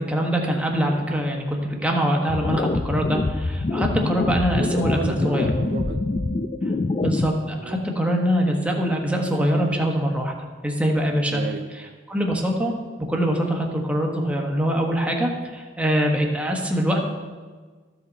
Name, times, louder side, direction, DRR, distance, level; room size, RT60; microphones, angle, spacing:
voice 1, 0.0-5.5 7.0-10.3 10.6-11.4 12.1-12.8 13.1-17.0, equal, 5° right, 0 dB, 1.1 m, -23 dB
sound 1, 2.3-7.3, left 3 dB, 30° left, 0.4 m, -25 dB
voice 2, 4.5-6.0 7.6-7.8 11.1-12.0, right 5 dB, 55° right, 8 dB, 0.4 m, -34 dB
sound 2, 5.4-8.7, right 2 dB, 80° right, 1.5 m, -41 dB
14.0 x 5.7 x 4.0 m, 1.4 s
head